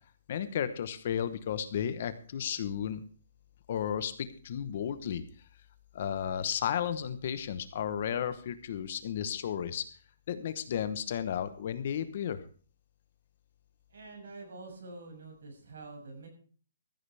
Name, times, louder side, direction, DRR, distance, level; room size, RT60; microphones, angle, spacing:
voice 1, 0.3-3.0 3.7-4.1 4.4-5.2 5.9-9.8 10.3-12.4, left 9 dB, 35° left, 12 dB, 1.0 m, -33 dB
voice 2, 13.9-16.3, right 3 dB, 65° right, 3 dB, 6.4 m, -46 dB
14.5 x 14.0 x 3.4 m, 0.41 s
hypercardioid pair, 175°, 0 cm